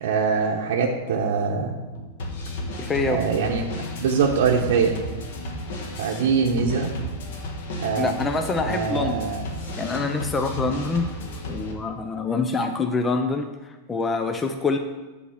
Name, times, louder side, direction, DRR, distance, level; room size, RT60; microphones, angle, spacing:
voice 1, 0.0-1.8 3.1-3.6 4.0-5.0 6.0-6.9 7.8-8.1 8.6-9.4, right 5 dB, 60° right, -1 dB, 0.8 m, -23 dB
sound 1, 1.8-11.7, left 1 dB, 55° left, 1.5 m, -33 dB
voice 2, 2.8-3.2 8.0-9.2 9.8-11.2 11.5-13.5 13.9-14.8, left 3 dB, 10° left, 6 dB, 0.4 m, -25 dB
8.5 x 4.2 x 7.2 m, 1.2 s
supercardioid pair, 180°, 0 cm